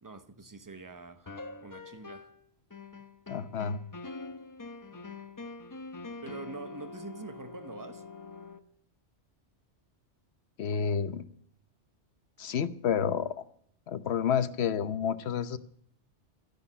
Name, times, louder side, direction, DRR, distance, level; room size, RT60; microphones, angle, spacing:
voice 1, 0.0-2.3 6.2-8.1, right 3 dB, 20° right, 0.8 m, -45 dB
sound 1, 1.3-2.4 2.7-8.6, left 3 dB, 20° left, 0.7 m, -44 dB
voice 2, 3.3-3.8 10.6-11.2 12.4-13.3 13.9-15.6, left 7 dB, 65° left, 1.0 m, -29 dB
12.5 x 9.9 x 9.8 m
omnidirectional pair, 1.2 m